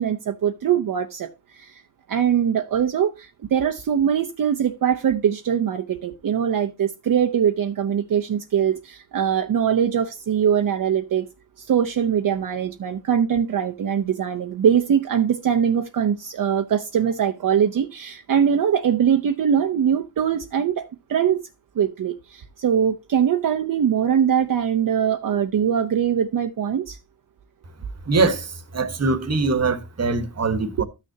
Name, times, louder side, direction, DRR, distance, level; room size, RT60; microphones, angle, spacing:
voice 1, 0.0-1.8 2.1-11.3 11.6-21.4 21.7-27.0, right 8 dB, 60° right, 0.8 m, -22 dB
voice 2, 28.1-30.8, right 3 dB, 45° right, 1.3 m, -22 dB
13.5 x 6.5 x 2.7 m
wide cardioid pair, 110°, 38 cm